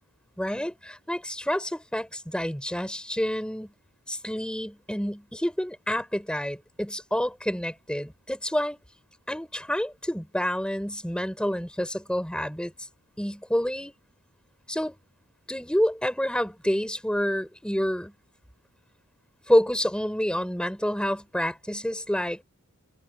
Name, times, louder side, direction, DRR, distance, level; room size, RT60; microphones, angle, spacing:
voice 1, 0.4-3.7 4.1-8.8 9.3-12.7 13.2-13.9 14.7-14.9 15.5-18.1 19.5-22.4, equal, 5° left, 5.7 m, -28 dB
head